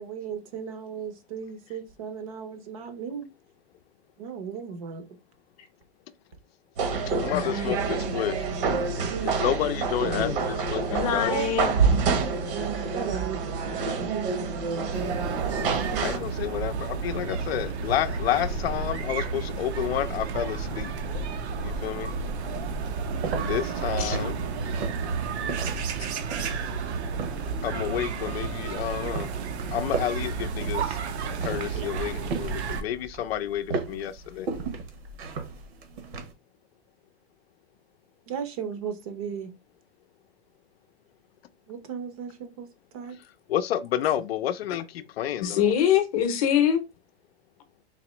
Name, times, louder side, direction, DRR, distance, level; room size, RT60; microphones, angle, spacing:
voice 1, 0.0-3.3 4.2-5.0 7.1-7.5 11.3-11.7 12.9-13.4 13.8-14.1 31.7-31.9 38.3-39.5 41.7-42.7 42.9-43.2, right 7 dB, 35° right, 0.6 m, -35 dB
sound 1, 6.8-16.2, right 5 dB, 55° right, 1.0 m, -27 dB
voice 2, 7.2-8.5 9.2-11.4 16.0-20.9 21.6-22.1 23.4-24.4 27.6-29.3 29.7-31.0 31.2-34.5 43.5-45.7, left 11 dB, 70° left, 0.5 m, -30 dB
voice 3, 10.0-10.4 10.9-11.7 24.0-24.2 45.4-46.8, left 9 dB, 35° left, 0.7 m, -24 dB
sound 2, 14.9-32.8, right 5 dB, 90° right, 1.0 m, -32 dB
sound 3, 21.8-36.3, right 4 dB, 70° right, 1.2 m, -37 dB
4.2 x 2.9 x 3.0 m
supercardioid pair, 180°, 32 cm